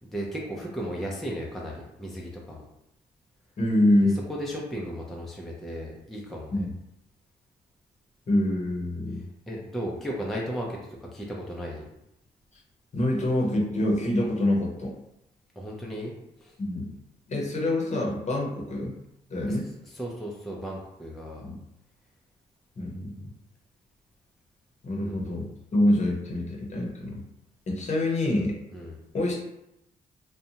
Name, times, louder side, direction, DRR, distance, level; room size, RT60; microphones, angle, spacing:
voice 1, 0.1-2.6 4.3-6.7 9.5-10.7 11.1-11.8 15.6-16.1 16.4-16.5 19.5-19.6 19.9-21.4 25.0-25.3 28.7-29.0, equal, ahead, -3 dB, 0.5 m, -35 dB
voice 2, 3.6-4.2 6.5-6.7 8.3-9.2 12.9-14.9 16.6-16.9 17.3-19.0 19.3-19.7 21.4-21.6 22.8-23.2 24.8-27.2 27.7-28.6 29.1-29.4, left 1 dB, 40° left, -1 dB, 0.8 m, -26 dB
2.6 x 2.2 x 2.7 m, 0.83 s
cardioid pair, 70°, 17 cm